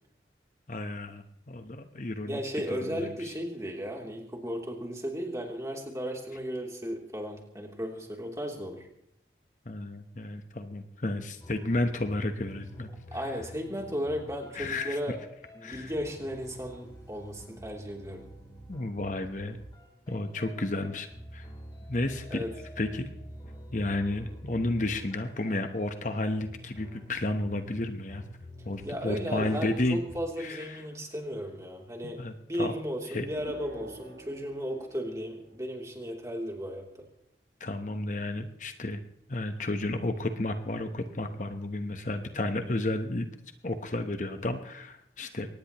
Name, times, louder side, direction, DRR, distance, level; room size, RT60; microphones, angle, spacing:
voice 1, 0.7-2.4 3.0-3.1 9.7-12.9 14.5-15.0 15.6-15.9 18.7-19.6 20.1-21.1 21.3-21.5 21.9-22.4 22.8-23.1 23.7-28.2 28.6-30.0 30.4-30.8 32.2-32.3 32.6-32.7 33.1-33.3 37.6-39.0 39.3-43.3 43.6-45.5, left 2 dB, 45° left, 7 dB, 1.0 m, -32 dB
voice 2, 2.3-8.9 13.1-15.2 15.5-18.2 22.3-22.5 28.8-36.9, equal, 15° right, 0 dB, 3.1 m, -35 dB
sound 1, 11.4-30.2, equal, 25° left, 3.3 m, -48 dB
sound 2, 33.3-36.0, right 2 dB, 60° right, 7.3 m, -48 dB
23.0 x 19.0 x 3.0 m, 0.76 s
head